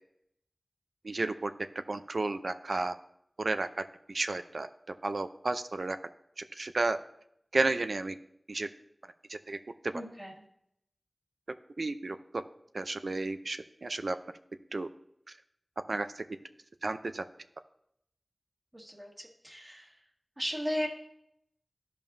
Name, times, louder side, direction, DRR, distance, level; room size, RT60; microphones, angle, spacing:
voice 1, 1.0-1.5 1.9-2.9 3.4-4.7 5.0-6.0 6.4-7.0 7.5-8.1 8.5-8.7 9.3-9.6 11.8-12.4 12.7-14.2 14.7-14.9 15.9-16.2 16.8-17.2, right 2 dB, 80° right, 9 dB, 0.4 m, -32 dB
voice 2, 9.9-10.4 18.7-20.0 20.4-20.9, equal, 25° right, -2 dB, 1.6 m, -36 dB
12.5 x 5.3 x 2.6 m, 0.76 s
wide cardioid pair, 40°, 0 cm